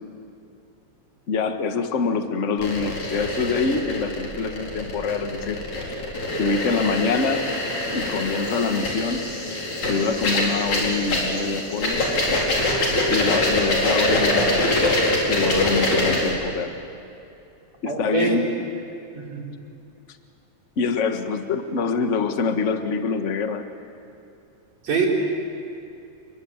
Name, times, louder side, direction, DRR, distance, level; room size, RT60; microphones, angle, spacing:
voice 1, 1.3-5.6 6.4-7.5 7.9-9.3 9.9-12.1 13.1-14.7 15.3-16.8 17.8-18.5 20.8-23.7, left 4 dB, 35° left, 7 dB, 1.4 m, -25 dB
sound 1, 2.6-16.3, left 1 dB, 80° left, 6.1 m, -24 dB
voice 2, 17.9-18.4 19.2-19.4 24.8-25.1, right 5 dB, 65° right, -2 dB, 5.6 m, -24 dB
29.0 x 22.0 x 9.1 m, 2.7 s
omnidirectional pair, 3.3 m